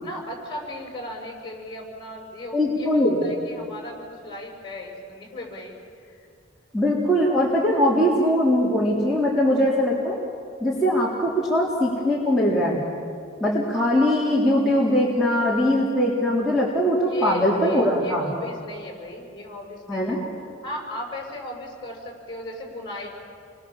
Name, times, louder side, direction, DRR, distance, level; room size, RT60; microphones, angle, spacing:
voice 1, 0.0-5.8 6.1-6.2 17.0-20.2 20.6-23.1, left 1 dB, 25° left, 0 dB, 6.1 m, -36 dB
voice 2, 2.5-3.3 6.7-10.2 10.6-12.8 13.4-18.3 19.9-20.2, equal, ahead, -7 dB, 3.7 m, -21 dB
29.5 x 24.0 x 7.3 m, 2.3 s
head